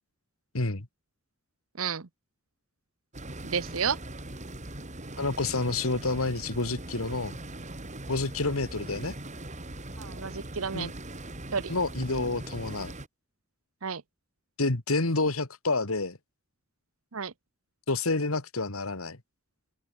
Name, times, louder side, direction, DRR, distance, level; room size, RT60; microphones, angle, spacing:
voice 1, 0.5-0.9 5.2-7.4 8.1-9.1 10.7-10.9 11.7-12.9 14.6-16.2 17.9-19.2, left 3 dB, 90° left, 2.3 m, -29 dB
voice 2, 1.8-2.1 3.4-4.0 10.0-10.9 11.5-11.7 13.8-14.0 17.1-17.3, right 6 dB, 80° right, 1.0 m, -31 dB
sound 1, 3.1-13.1, right 1 dB, 35° right, 4.3 m, -41 dB
open air
head